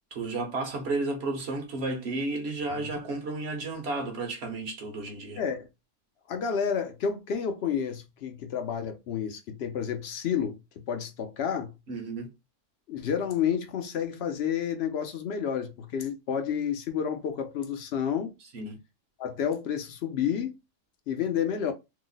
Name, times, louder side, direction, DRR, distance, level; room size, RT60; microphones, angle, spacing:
voice 1, 0.1-5.4 11.9-12.3 18.5-18.8, right 2 dB, 60° right, 1.0 m, -32 dB
voice 2, 5.4-5.7 6.3-11.7 12.9-18.3 19.2-20.5 21.1-21.7, left 8 dB, 65° left, 0.7 m, -30 dB
2.9 x 2.0 x 3.8 m
omnidirectional pair, 1.3 m